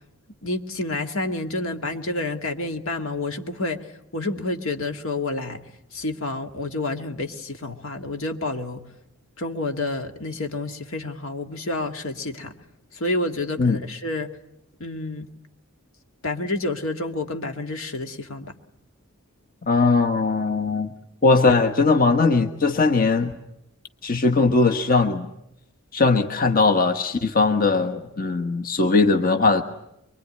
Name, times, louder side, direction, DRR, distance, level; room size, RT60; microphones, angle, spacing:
voice 1, 0.4-3.8 4.1-5.6 5.9-8.8 9.4-12.5 12.9-14.3 14.8-15.3 16.2-18.5, left 2 dB, 75° left, 5 dB, 2.0 m, -29 dB
voice 2, 19.6-20.9 21.2-23.3 24.0-25.3 25.9-29.6, left 3 dB, 45° left, 5 dB, 1.3 m, -19 dB
24.5 x 24.0 x 9.6 m, 0.82 s
head